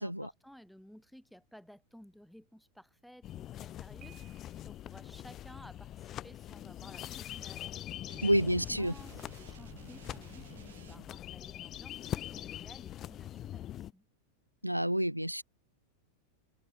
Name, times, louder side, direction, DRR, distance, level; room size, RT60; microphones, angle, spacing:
voice 1, 0.0-4.2 4.6-7.7 8.2-8.4 8.7-14.1, equal, ahead, 1.6 m, -55 dB
sound 1, 3.2-13.9, left 12 dB, 30° left, 0.4 m, -43 dB
Piano, 4.0-5.0, right 18 dB, 40° right, 5.9 m, -60 dB
sound 2, 8.1-11.3, right 11 dB, 60° right, 4.9 m, -54 dB
voice 2, 8.2-8.9 14.6-15.4, equal, 90° right, 0.3 m, -29 dB
figure-of-eight pair, 90°, 0 cm